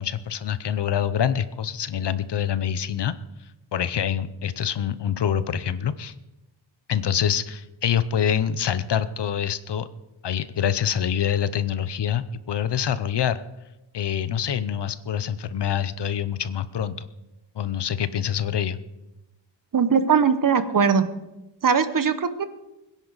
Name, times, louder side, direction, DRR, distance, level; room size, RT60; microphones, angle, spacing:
voice 1, 0.0-3.1 3.7-6.1 6.9-9.9 10.2-13.4 13.9-17.1 17.5-18.8, left 9 dB, 60° left, 14 dB, 0.8 m, -25 dB
voice 2, 19.7-21.1 21.6-22.4, right 6 dB, 45° right, 12 dB, 0.9 m, -20 dB
23.5 x 10.5 x 4.1 m, 0.99 s
wide cardioid pair, 160°, 46 cm